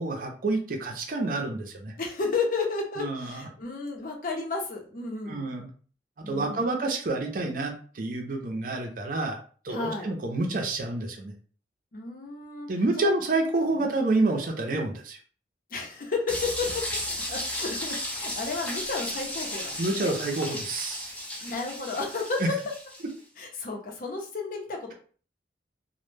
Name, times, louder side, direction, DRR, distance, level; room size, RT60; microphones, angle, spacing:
voice 1, 0.0-1.9 3.0-3.5 5.3-5.7 6.3-9.4 9.6-11.3 12.7-15.2 19.8-21.1, right 2 dB, 50° right, 2 dB, 0.5 m, -28 dB
voice 2, 2.0-5.5 6.2-6.7 9.7-10.1 11.9-12.7 13.0-13.1 15.7-16.9 17.3-20.1 21.4-22.6 23.4-24.9, left 4 dB, 50° left, 1 dB, 0.6 m, -32 dB
sound 1, 16.3-23.1, left 1 dB, 10° left, 0.4 m, -34 dB
2.1 x 2.1 x 3.1 m, 0.41 s
head